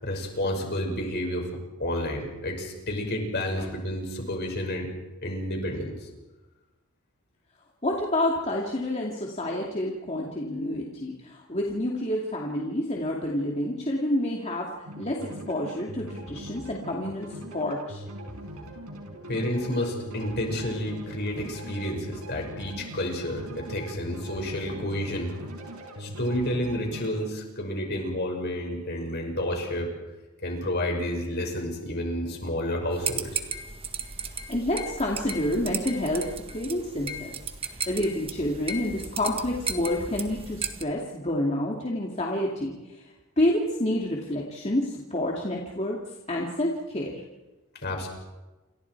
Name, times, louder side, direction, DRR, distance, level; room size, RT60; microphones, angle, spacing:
voice 1, 0.0-1.5 1.8-4.9 5.2-6.1 19.3-25.3 26.0-29.9 30.4-33.4 47.8-48.1, left 1 dB, 45° left, 2 dB, 6.0 m, -30 dB
voice 2, 7.8-14.7 15.0-18.0 34.3-36.3 36.5-37.3 37.6-43.0 43.4-46.0 46.3-47.2, left 1 dB, 30° left, -1 dB, 2.5 m, -28 dB
sound 1, 14.9-27.2, right 1 dB, 85° right, 6.1 m, -41 dB
sound 2, 32.9-40.8, right 5 dB, 25° right, 1.6 m, -35 dB
29.0 x 27.0 x 4.8 m, 1.1 s
head